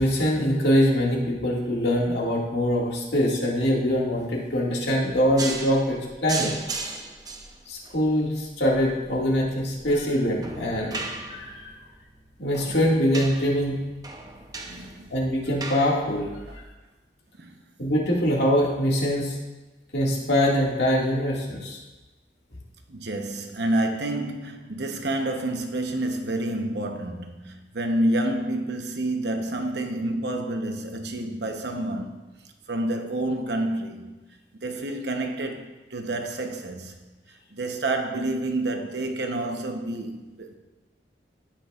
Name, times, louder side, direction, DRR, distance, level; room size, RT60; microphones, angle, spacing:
voice 1, 0.0-6.5 7.7-11.6 12.4-13.8 15.1-16.3 17.8-19.3 19.9-21.8, equal, 75° left, 2.1 m, -23 dB
sound 1, 5.4-16.6, right 3 dB, 20° right, 0.7 m, -37 dB
voice 2, 14.7-15.1 16.5-16.6 17.4-17.5 22.9-32.2 32.7-34.1 34.6-36.9 37.5-40.5, right 1 dB, 75° right, 0.9 m, -28 dB
16.0 x 6.0 x 2.4 m
head